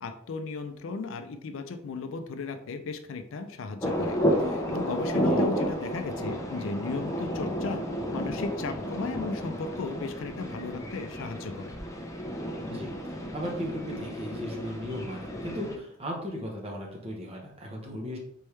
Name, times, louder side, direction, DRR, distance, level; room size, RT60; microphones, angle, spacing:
voice 1, 0.0-7.8 8.1-11.7, left 3 dB, 70° left, 8 dB, 0.4 m, -35 dB
sound 1, 3.8-15.8, equal, 15° left, 0.6 m, -31 dB
voice 2, 5.1-5.5 12.7-18.2, equal, 30° right, 0 dB, 1.0 m, -37 dB
4.3 x 3.4 x 3.2 m, 0.71 s
head